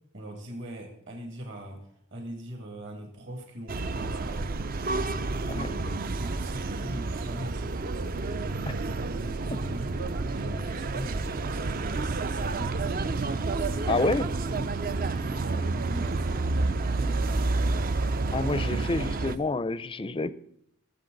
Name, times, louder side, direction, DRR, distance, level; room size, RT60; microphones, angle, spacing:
voice 1, 0.1-4.6 4.9-8.2 8.8-13.1 13.5-17.8 18.5-19.3, equal, 55° right, 3 dB, 2.3 m, -41 dB
sound 1, 3.7-19.4, right 3 dB, 40° right, 0.4 m, -29 dB
voice 2, 13.9-14.2 18.3-20.3, left 3 dB, 25° left, 16 dB, 0.4 m, -28 dB
20.0 x 7.5 x 3.9 m, 0.72 s
head